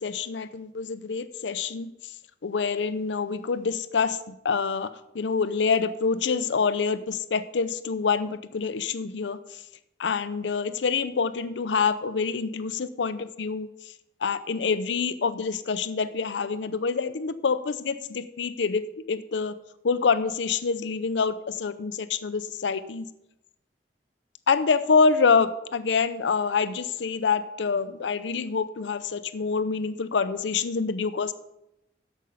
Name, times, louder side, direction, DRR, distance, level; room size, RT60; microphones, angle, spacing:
voice 1, 0.0-1.9 2.4-4.2 4.4-4.9 5.1-9.4 10.0-13.7 14.2-19.5 19.8-23.0 24.5-31.3, left 5 dB, 90° left, 13 dB, 0.5 m, -26 dB
13.0 x 5.4 x 5.4 m, 0.86 s
head